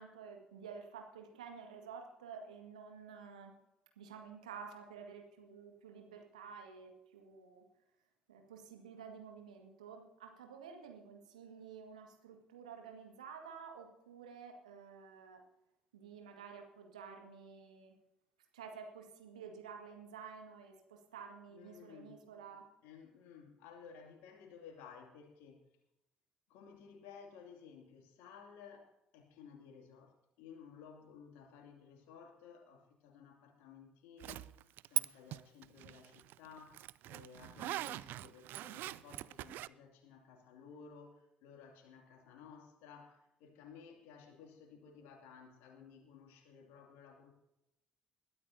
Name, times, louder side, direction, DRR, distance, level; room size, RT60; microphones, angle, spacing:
voice 1, 0.0-3.5 4.0-7.6 8.3-15.4 15.9-17.9 18.5-22.7, right 6 dB, 80° right, 3 dB, 1.9 m, -51 dB
voice 2, 21.5-22.2 22.8-25.7 26.5-47.3, left 6 dB, 65° left, 3 dB, 2.6 m, -56 dB
Zipper (clothing), 34.2-35.1 35.3-39.7, right 15 dB, 60° right, 0.4 m, -41 dB
21.0 x 13.0 x 2.8 m, 0.87 s
figure-of-eight pair, 50°, 4 cm